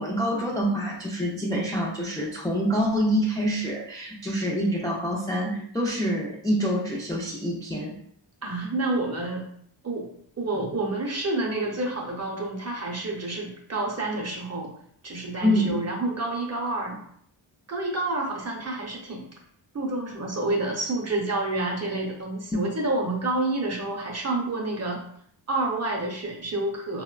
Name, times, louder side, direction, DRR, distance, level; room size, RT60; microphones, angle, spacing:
voice 1, 0.0-7.9 15.4-15.8 22.5-22.6, equal, 10° left, -4 dB, 0.3 m, -26 dB
voice 2, 8.4-9.5 9.8-10.1 10.4-14.7 15.0-17.0 17.7-19.2 19.7-25.0 25.5-27.0, right 2 dB, 35° right, -1 dB, 0.5 m, -29 dB
3.7 x 2.1 x 2.3 m, 0.64 s
wide cardioid pair, 170°, 45 cm